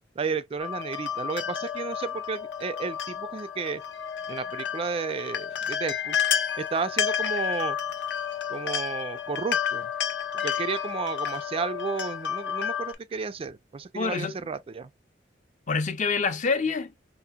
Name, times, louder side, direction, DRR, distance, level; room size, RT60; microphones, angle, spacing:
voice 1, 0.2-3.8 4.3-6.2 6.6-7.8 8.5-9.9 10.3-14.9, right 5 dB, 30° right, 0.3 m, -32 dB
sound 1, 0.6-12.9, left 8 dB, 75° left, 0.7 m, -31 dB
voice 2, 13.9-14.4 15.7-17.0, left 4 dB, 45° left, 0.5 m, -26 dB
4.1 x 2.8 x 2.2 m
head